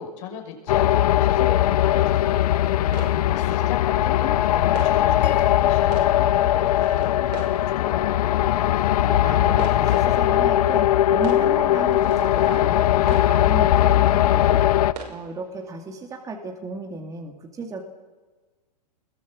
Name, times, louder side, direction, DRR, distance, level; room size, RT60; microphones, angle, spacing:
voice 1, 0.0-2.7 3.2-8.4, left 8 dB, 50° left, 1 dB, 5.8 m, -36 dB
sound 1, 0.7-14.9, left 12 dB, 65° left, 0.8 m, -20 dB
sound 2, 2.6-16.3, right 5 dB, 75° right, 6.0 m, -44 dB
sound 3, 5.2-7.6, left 12 dB, 85° left, 1.5 m, -38 dB
voice 2, 9.1-10.9 11.1-14.6 15.1-17.8, right 3 dB, 15° right, 2 dB, 2.2 m, -34 dB
23.0 x 21.5 x 7.5 m, 1.3 s
hypercardioid pair, 130°, 21 cm